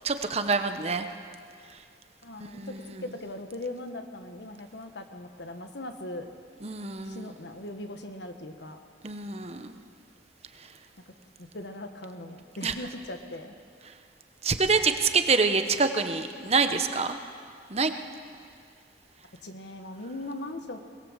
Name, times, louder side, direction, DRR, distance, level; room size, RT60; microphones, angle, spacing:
voice 1, 0.0-1.1 2.6-3.0 6.6-7.3 9.0-9.7 12.6-12.7 14.4-17.2 17.7-17.9, right 4 dB, 35° right, 8 dB, 1.0 m, -26 dB
voice 2, 2.2-2.7 3.0-6.3 7.0-8.8 11.4-13.5 19.4-20.8, left 1 dB, 75° left, 6 dB, 1.6 m, -39 dB
22.5 x 20.0 x 7.5 m, 2.3 s
head